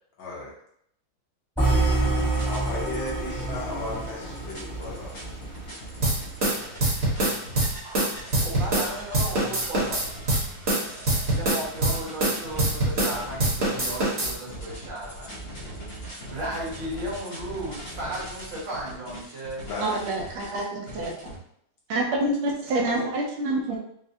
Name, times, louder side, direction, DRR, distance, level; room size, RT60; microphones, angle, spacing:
voice 1, 0.2-0.5 2.5-5.1 19.6-19.9, left 2 dB, 70° left, -5 dB, 1.8 m, -35 dB
sound 1, 1.6-5.7, right 2 dB, ahead, 0.9 m, -27 dB
sound 2, 2.0-21.4, right 1 dB, 55° left, 0.6 m, -40 dB
sound 3, 6.0-8.9 9.1-13.1 13.4-14.3, right 1 dB, 40° right, 1.2 m, -24 dB
voice 2, 8.4-10.0 11.3-15.3 16.3-19.6 22.9-23.1, right 1 dB, 65° right, -8 dB, 2.1 m, -35 dB
voice 3, 19.8-21.3 21.9-23.8, right 2 dB, 85° right, 0 dB, 1.6 m, -27 dB
4.8 x 2.1 x 2.7 m, 0.71 s
omnidirectional pair, 2.2 m